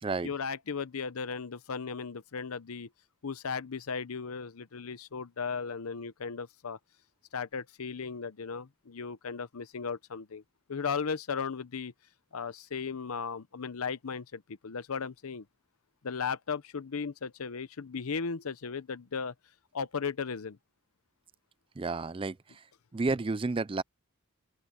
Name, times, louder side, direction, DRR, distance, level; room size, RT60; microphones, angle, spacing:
voice 1, 0.2-2.9 3.2-6.8 7.3-10.4 10.7-11.9 12.3-15.4 16.0-19.3 19.7-20.6, left 5 dB, 85° left, 0.7 m, -36 dB
voice 2, 21.8-22.6 22.9-23.8, right 3 dB, 25° right, 0.4 m, -31 dB
open air
head